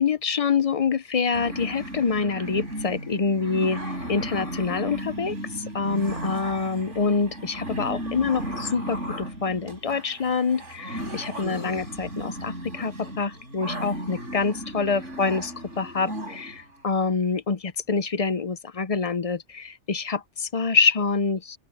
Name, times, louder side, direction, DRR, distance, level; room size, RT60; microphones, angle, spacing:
voice 1, 0.0-3.8 4.1-21.6, left 5 dB, 40° left, 0.6 m, -26 dB
sound 1, 1.3-16.7, right 1 dB, 85° right, 7.6 m, -35 dB
open air
omnidirectional pair, 1.2 m